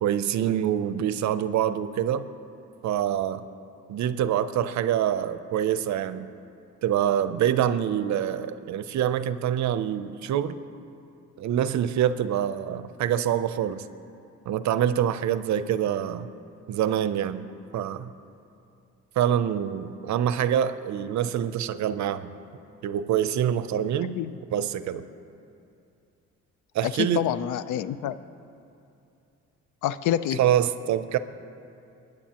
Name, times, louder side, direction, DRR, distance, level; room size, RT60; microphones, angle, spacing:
voice 1, 0.0-2.2 2.8-3.4 3.9-6.3 6.8-10.6 11.4-13.9 14.5-16.3 16.7-17.5 17.7-18.1 19.2-22.4 22.8-24.2 24.5-25.0 26.7-27.3 30.4-31.2, right 10 dB, 70° right, 13 dB, 0.6 m, -25 dB
voice 2, 26.8-28.2 29.8-30.4, left 11 dB, 80° left, 14 dB, 0.5 m, -27 dB
26.0 x 9.3 x 2.9 m, 2.6 s
cardioid pair, 90°, 30 cm